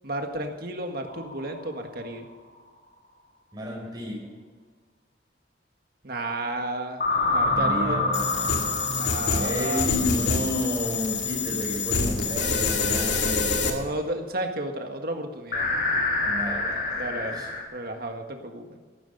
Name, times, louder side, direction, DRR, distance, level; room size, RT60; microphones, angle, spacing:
voice 1, 0.0-2.3 6.0-8.0 9.0-9.9 13.6-15.7 17.0-17.4 17.7-18.8, right 1 dB, 50° right, 4 dB, 1.8 m, -32 dB
sound 1, 1.1-1.9 7.0-10.7 15.5-17.6, left 2 dB, 50° left, 2.7 m, -27 dB
voice 2, 3.5-4.3 7.5-8.6 9.4-13.5 16.2-17.5, left 1 dB, 20° right, -1 dB, 4.6 m, -32 dB
sound 2, 7.4-12.5, right 1 dB, 90° right, 3.6 m, -38 dB
sound 3, 8.1-13.7, left 4 dB, 70° left, 2.4 m, -26 dB
14.0 x 12.5 x 5.5 m, 1.5 s
head